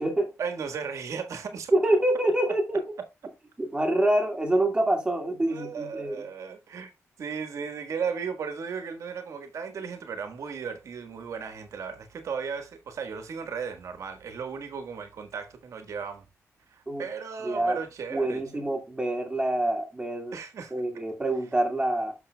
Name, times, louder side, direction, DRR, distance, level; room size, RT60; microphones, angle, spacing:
voice 1, 0.4-1.7 5.5-6.9 7.2-16.2 16.7-18.7 20.3-20.7, right 6 dB, 75° right, 1.4 m, -35 dB
voice 2, 1.7-2.8 3.6-6.2 16.9-17.0 17.4-17.8 18.1-20.3 20.7-22.1, right 1 dB, 15° right, 2.1 m, -26 dB
12.0 x 5.9 x 2.2 m
cardioid pair, 95°, 5 cm